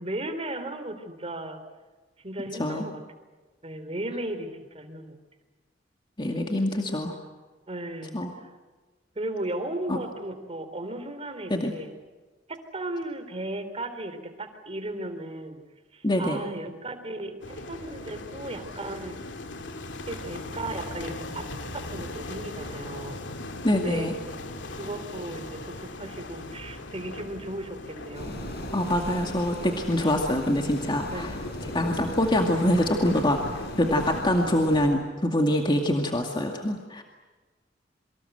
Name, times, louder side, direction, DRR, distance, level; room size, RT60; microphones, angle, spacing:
voice 1, 0.0-1.6 2.2-3.0 3.6-5.2 7.7-8.5 9.2-11.9 12.5-15.6 15.9-19.2 20.1-21.5 21.9-23.2 23.7-24.1 24.8-28.4 31.1-31.2, right 1 dB, 35° right, 9 dB, 3.5 m, -36 dB
voice 2, 6.2-7.1 8.1-8.3 9.9-10.0 11.5-11.7 16.0-16.4 23.6-24.1 28.7-31.3 31.7-33.4 33.8-37.0, left 1 dB, 25° left, 3 dB, 2.2 m, -25 dB
sound 1, 17.4-34.2, left 2 dB, 90° left, 2.5 m, -39 dB
sound 2, 28.1-34.9, left 1 dB, 60° left, 5.6 m, -38 dB
27.5 x 24.5 x 8.0 m, 1.3 s
head